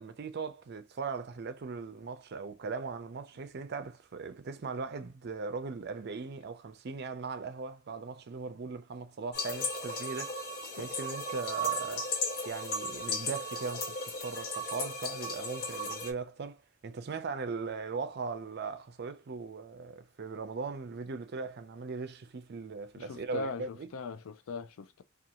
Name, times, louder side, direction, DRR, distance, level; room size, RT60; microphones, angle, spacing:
voice 1, 0.0-10.4 10.8-12.1 12.5-23.9, right 4 dB, 55° right, 0.5 m, -39 dB
sound 1, 9.3-16.1, left 1 dB, 50° left, 0.7 m, -35 dB
voice 2, 22.9-25.0, left 3 dB, 85° left, 0.4 m, -40 dB
2.5 x 2.4 x 2.8 m
head